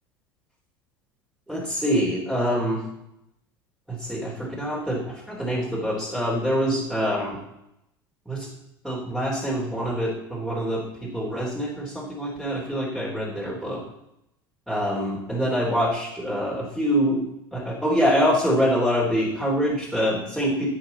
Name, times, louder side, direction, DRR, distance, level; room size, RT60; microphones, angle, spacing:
voice 1, 1.5-2.8 3.9-7.4 8.3-8.5 8.8-13.8 14.7-17.2 17.5-20.7, equal, 5° right, -6 dB, 3.6 m, -25 dB
10.5 x 8.1 x 4.2 m, 0.82 s
hypercardioid pair, 75°, 13 cm